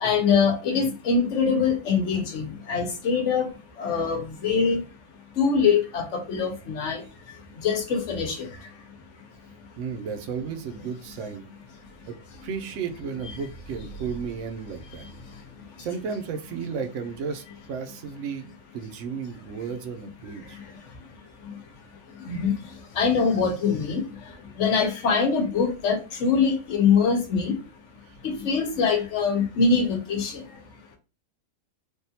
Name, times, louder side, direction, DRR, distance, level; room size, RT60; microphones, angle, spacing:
voice 1, 0.0-3.5 3.8-4.8 5.4-7.0 7.6-8.4 22.3-22.5 23.0-24.0 24.6-27.6 28.2-30.3, left 5 dB, 70° left, 3 dB, 1.0 m, -23 dB
voice 2, 9.8-11.5 12.1-12.2 12.4-15.1 15.8-20.6 28.1-28.2, right 6 dB, 75° right, 7 dB, 0.9 m, -34 dB
3.4 x 2.3 x 2.7 m, 0.31 s
omnidirectional pair, 1.3 m